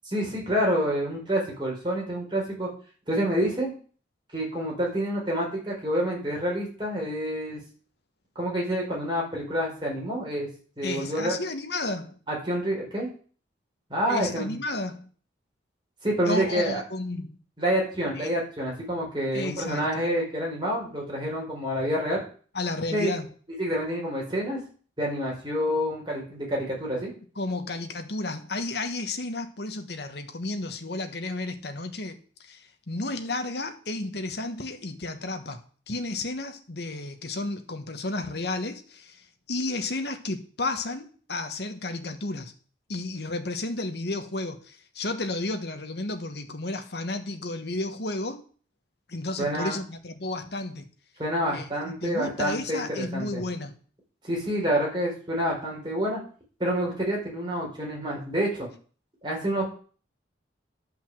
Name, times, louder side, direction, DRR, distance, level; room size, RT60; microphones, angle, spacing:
voice 1, 0.1-2.7 3.1-3.7 4.3-7.6 8.3-10.5 10.8-11.3 12.3-13.1 13.9-14.6 16.0-16.8 17.6-22.2 22.9-23.1 23.6-24.6 25.0-27.1 49.4-49.8 51.2-52.8 53.1-53.4 54.2-56.2 56.6-58.7 59.2-59.8, equal, 25° right, 4.4 m, -28 dB
voice 2, 10.8-12.2 14.1-15.1 16.2-17.4 18.2-18.3 19.3-20.0 22.5-23.3 27.4-42.5 42.9-48.4 49.1-50.9 51.5-53.8, left 2 dB, 60° left, 1.3 m, -32 dB
10.5 x 5.5 x 7.6 m
head